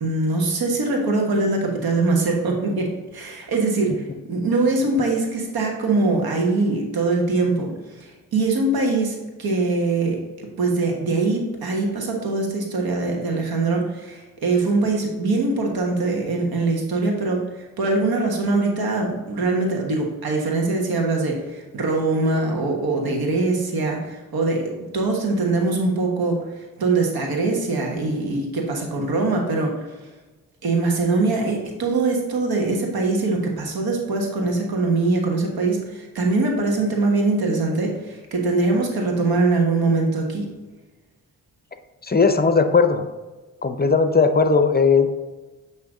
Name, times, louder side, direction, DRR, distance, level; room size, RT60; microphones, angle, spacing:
voice 1, 0.0-29.9 30.6-40.5, right 3 dB, 75° right, 1 dB, 1.4 m, -22 dB
voice 2, 42.0-43.1 43.6-45.1, left 5 dB, 25° left, 8 dB, 0.6 m, -17 dB
8.7 x 3.2 x 3.7 m, 1.2 s
supercardioid pair, 45°, 37 cm